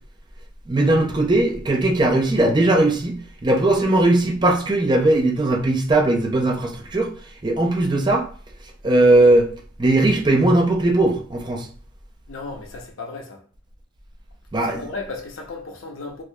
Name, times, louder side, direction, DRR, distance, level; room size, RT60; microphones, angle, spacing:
voice 1, 0.7-7.1 7.4-8.2 8.8-9.5 9.8-11.7 14.5-14.9, right 2 dB, 20° right, 0.5 m, -18 dB
voice 2, 12.3-13.4 14.6-16.2, left 3 dB, 90° left, 0.7 m, -34 dB
4.6 x 2.6 x 2.3 m
head